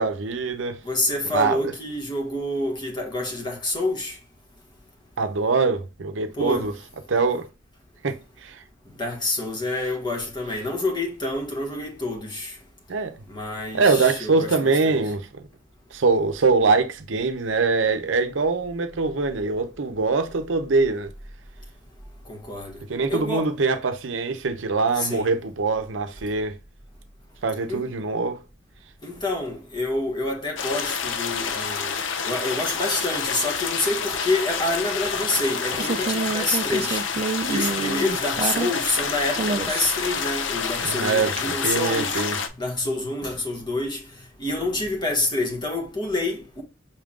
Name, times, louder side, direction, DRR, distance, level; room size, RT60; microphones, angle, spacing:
voice 1, 0.0-0.8 1.3-1.7 5.2-6.7 7.1-7.5 8.0-8.6 12.9-13.1 13.7-15.3 15.9-21.1 22.9-26.5 27.4-28.4 40.8-42.3, right 4 dB, 70° right, 0.7 m, -23 dB
voice 2, 0.8-4.2 6.3-6.7 9.0-12.6 13.3-15.0 22.2-22.8 23.1-23.5 24.9-25.3 27.7-27.8 29.0-31.9 32.2-37.1 37.4-42.2 42.6-46.6, left 2 dB, 25° left, 1.5 m, -27 dB
sound 1, 30.6-42.5, left 6 dB, 70° left, 0.7 m, -28 dB
sound 2, 35.1-39.0 39.3-40.1 41.4-41.5, right 4 dB, 30° right, 0.4 m, -28 dB
5.6 x 3.6 x 2.4 m
head